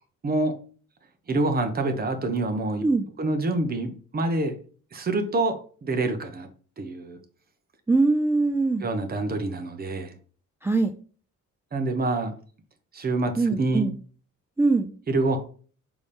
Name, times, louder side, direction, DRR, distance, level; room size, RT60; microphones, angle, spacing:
voice 1, 1.3-2.8 3.2-4.6 4.9-6.5 6.8-7.2 8.8-10.1 11.7-12.3 12.9-13.9 15.1-15.4, right 2 dB, 30° right, 6 dB, 1.0 m, -26 dB
voice 2, 7.9-8.8 10.6-10.9 13.4-14.0 14.6-14.9, right 3 dB, 10° right, 8 dB, 0.3 m, -22 dB
7.0 x 4.1 x 3.5 m, 0.41 s
cardioid pair, 135°, 32 cm